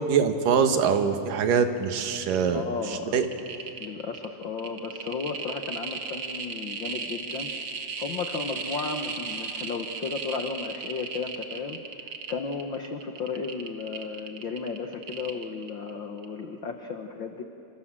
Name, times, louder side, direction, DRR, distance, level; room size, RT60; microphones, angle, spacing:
voice 1, 0.1-3.3, right 6 dB, 75° right, 8 dB, 3.0 m, -24 dB
sound 1, 1.8-1.9 2.1-2.5 2.8-15.9 16.2-16.3, right 5 dB, 45° right, 2.0 m, -36 dB
voice 2, 2.5-3.3 3.8-7.5 7.8-17.4, left 5 dB, 85° left, 5 dB, 1.0 m, -34 dB
28.0 x 27.5 x 7.5 m, 2.9 s
omnidirectional pair, 4.0 m